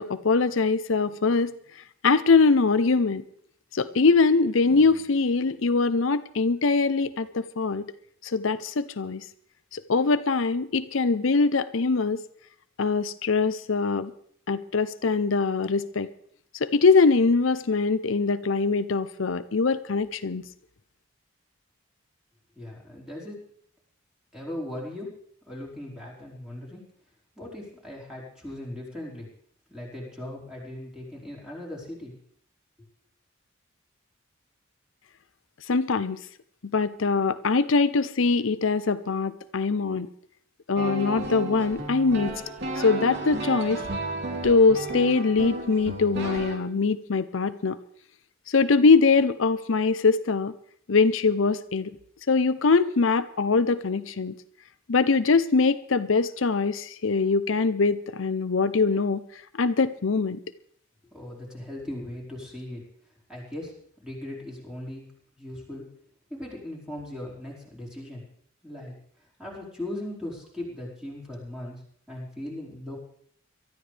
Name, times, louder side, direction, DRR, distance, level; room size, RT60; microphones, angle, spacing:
voice 1, 0.0-1.5 2.0-3.2 3.7-7.9 8.2-9.3 9.7-12.2 12.8-14.1 14.5-16.1 16.5-20.4 35.7-36.2 36.6-40.1 40.7-42.4 42.8-43.8 44.4-47.8 48.5-50.5 50.9-51.9 52.3-54.4 54.9-59.2 59.6-60.4, left 4 dB, 70° left, 13 dB, 0.7 m, -22 dB
voice 2, 22.5-23.4 24.3-25.1 25.5-26.8 27.4-29.3 29.7-32.1 61.1-62.8 63.3-63.7 64.0-65.0 65.3-65.8 66.3-68.2 68.6-68.9 69.4-71.8 72.1-73.0, left 1 dB, 5° right, -5 dB, 4.9 m, -38 dB
sound 1, 40.8-46.6, right 2 dB, 55° right, 2.8 m, -33 dB
23.0 x 13.0 x 3.4 m, 0.63 s
head